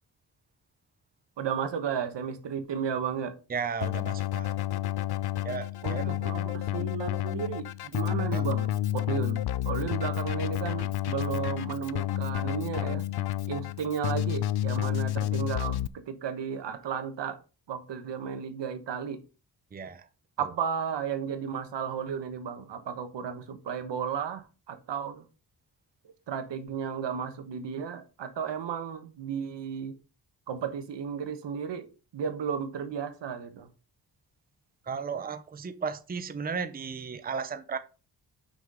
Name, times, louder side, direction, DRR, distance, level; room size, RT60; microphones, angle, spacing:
voice 1, 1.4-3.4 5.8-13.0 13.5-17.4 17.7-19.2 20.4-25.2 26.3-30.0 30.5-33.7, right 7 dB, 85° right, 1.2 m, -34 dB
voice 2, 3.5-4.5 5.4-6.2 8.3-8.4 19.7-20.1 20.4-20.5 34.9-37.8, right 5 dB, 20° right, 0.6 m, -35 dB
Keyboard (musical), 3.8-15.9, left 14 dB, 65° left, 0.5 m, -30 dB
6.1 x 5.8 x 4.8 m
wide cardioid pair, 125°, 42 cm